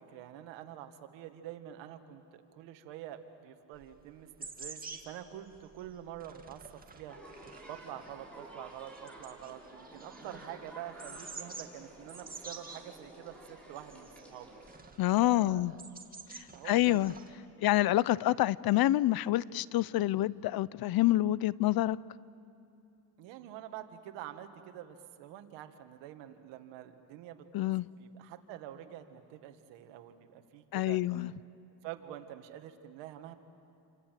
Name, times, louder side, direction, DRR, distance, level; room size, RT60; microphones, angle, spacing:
voice 1, 0.0-6.6 6.9-14.6 15.2-15.8 16.3-17.2 23.2-31.0 31.8-33.4, right 11 dB, 90° right, 1.9 m, -47 dB
sound 1, 3.7-17.3, right 4 dB, 20° right, 2.0 m, -50 dB
sound 2, 7.1-14.8, right 1 dB, 5° left, 6.7 m, -51 dB
voice 2, 15.0-15.7 16.3-17.1 17.6-22.0 27.5-27.9 30.7-31.3, left 15 dB, 60° left, 0.6 m, -27 dB
28.5 x 26.5 x 7.6 m
cardioid pair, 105°, 43 cm